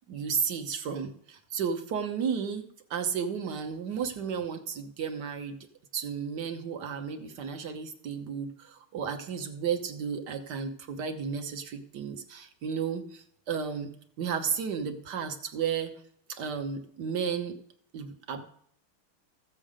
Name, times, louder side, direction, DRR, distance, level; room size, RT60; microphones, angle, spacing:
voice 1, 0.1-5.6 5.9-15.9 16.3-17.6 17.9-18.4, right 6 dB, 55° right, 7 dB, 1.5 m, -33 dB
14.5 x 7.6 x 5.0 m, 0.65 s
omnidirectional pair, 2.3 m